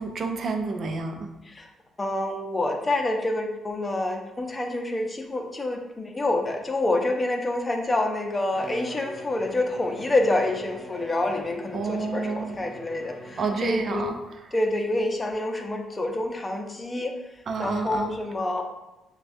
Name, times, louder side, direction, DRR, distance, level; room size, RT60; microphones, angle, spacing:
voice 1, 0.0-1.3 11.7-12.5 13.4-14.1 17.5-18.2, right 4 dB, 50° right, 6 dB, 0.5 m, -29 dB
voice 2, 2.0-14.1 14.5-17.1 17.6-18.6, left 2 dB, 20° left, 3 dB, 0.6 m, -27 dB
Bowed string instrument, 8.5-14.2, right 1 dB, 10° right, 0.8 m, -42 dB
6.6 x 2.3 x 2.7 m, 0.94 s
cardioid pair, 90°, 0 cm